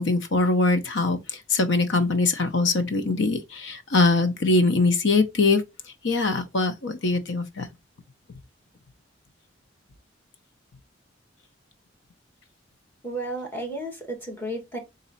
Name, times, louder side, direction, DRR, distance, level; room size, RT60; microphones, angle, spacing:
voice 1, 0.0-5.6 6.0-7.7, left 3 dB, 65° left, 0.7 m, -22 dB
voice 2, 13.0-14.8, right 1 dB, 10° left, 1.4 m, -33 dB
4.1 x 2.6 x 4.0 m
head